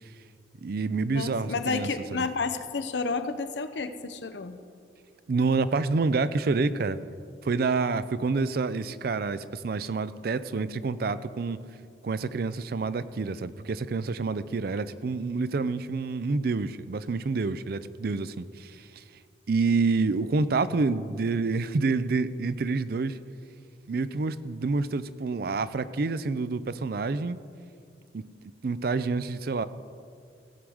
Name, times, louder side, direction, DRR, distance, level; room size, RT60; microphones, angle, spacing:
voice 1, 0.6-2.3 5.3-7.0 7.4-11.6 12.0-19.0 19.5-23.2 23.9-27.4 28.1-28.2 28.6-29.6, right 4 dB, 55° right, 14 dB, 0.4 m, -28 dB
voice 2, 1.1-4.6, left 4 dB, 75° left, 9 dB, 0.7 m, -31 dB
16.5 x 7.8 x 4.8 m, 2.2 s
head